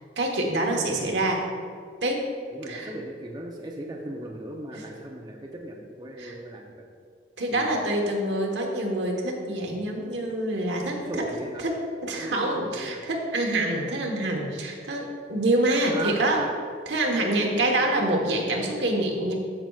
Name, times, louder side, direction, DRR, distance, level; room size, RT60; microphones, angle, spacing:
voice 1, 0.2-1.4 2.0-2.2 2.7-2.9 6.2-6.4 7.4-11.2 11.6-11.8 12.0-16.4 16.9-19.3, right 1 dB, 80° right, 0 dB, 1.2 m, -26 dB
voice 2, 2.5-6.8 7.5-7.7 11.0-11.6 12.2-13.0 15.9-16.5 17.1-18.7, right 1 dB, 25° right, -1 dB, 0.6 m, -37 dB
13.5 x 5.8 x 2.4 m, 2.1 s
head